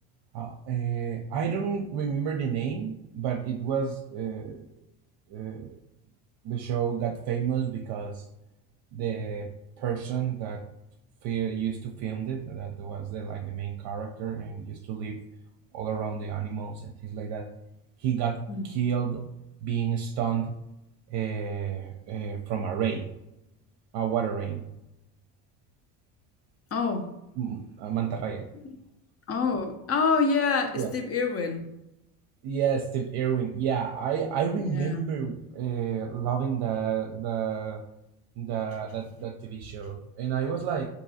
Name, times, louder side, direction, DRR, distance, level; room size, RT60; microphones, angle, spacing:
voice 1, 0.3-4.7 5.3-5.8 6.4-8.2 8.9-9.5 9.8-10.6 11.2-15.2 15.7-17.5 18.0-18.4 18.6-19.2 19.6-20.5 21.1-23.1 23.9-24.6 27.4-28.5 30.7-30.9 32.4-37.8 38.4-40.9, right 8 dB, 60° right, 0.6 m, -30 dB
voice 2, 26.7-27.1 29.3-31.6 34.6-35.0, left 4 dB, 30° left, 0.6 m, -26 dB
3.9 x 2.7 x 2.7 m
supercardioid pair, 80°, 45 cm